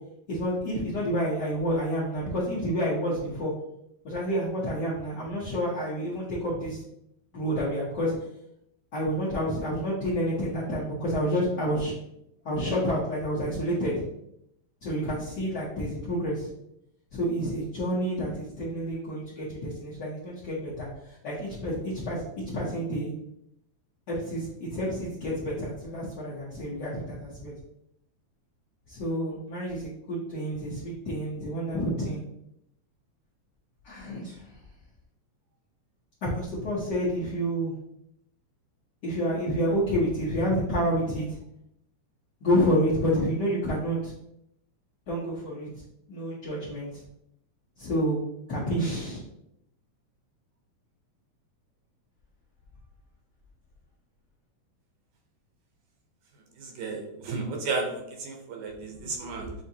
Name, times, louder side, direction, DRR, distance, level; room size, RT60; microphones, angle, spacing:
voice 1, 0.3-3.5 4.0-6.8 7.3-8.1 8.9-11.9 12.4-14.0 14.8-16.5 17.1-22.2 22.5-23.1 24.1-27.5 28.9-32.2 33.8-34.5 36.2-37.7 39.0-41.4 42.4-44.1 45.1-45.7 46.1-47.0 47.8-48.2 48.5-49.2, equal, 80° left, -8 dB, 0.9 m, -29 dB
voice 2, 56.6-59.5, right 3 dB, 80° right, 2 dB, 2.1 m, -33 dB
7.3 x 2.7 x 2.7 m, 0.78 s
omnidirectional pair, 3.3 m